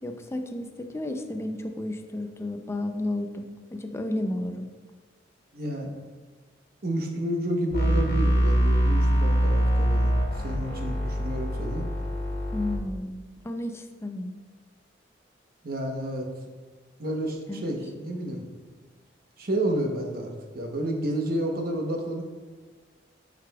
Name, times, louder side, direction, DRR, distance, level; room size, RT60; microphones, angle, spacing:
voice 1, 0.0-4.7 12.5-14.3 17.5-17.7, left 1 dB, 15° left, 6 dB, 0.4 m, -32 dB
voice 2, 5.5-5.9 6.8-10.1 10.4-11.9 15.6-16.3 17.0-18.5 19.4-22.2, right 1 dB, 55° right, 2 dB, 0.9 m, -30 dB
sound 1, 7.7-12.8, equal, 50° left, 1.8 m, -24 dB
9.3 x 4.9 x 2.3 m, 1.4 s
head